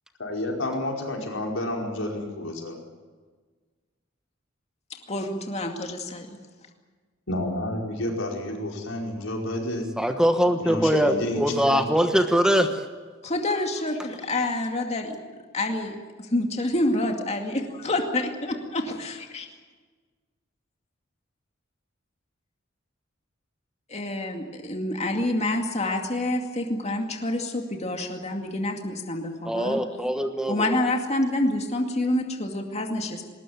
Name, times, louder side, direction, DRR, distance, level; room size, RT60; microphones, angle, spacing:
voice 1, 0.2-2.8 7.3-9.9 10.6-11.9, left 1 dB, 85° left, 1 dB, 4.9 m, -30 dB
voice 2, 4.9-6.4 13.2-15.2 15.5-16.0 16.3-19.5 23.9-29.8 30.5-33.2, left 1 dB, 35° left, 3 dB, 2.3 m, -27 dB
voice 3, 10.0-12.8 29.5-30.7, equal, 5° right, 7 dB, 1.2 m, -22 dB
20.0 x 19.5 x 9.4 m, 1.4 s
head